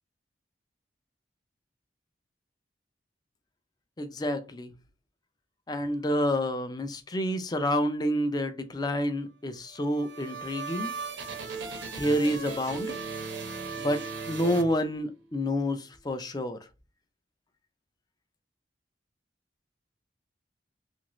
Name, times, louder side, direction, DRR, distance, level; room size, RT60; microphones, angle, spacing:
voice 1, 4.0-4.7 5.7-10.9 11.9-12.9 13.8-16.6, equal, 20° left, 0.4 m, -29 dB
sound 1, 9.7-15.3, right 4 dB, 75° right, 0.7 m, -37 dB
2.9 x 2.5 x 3.0 m
head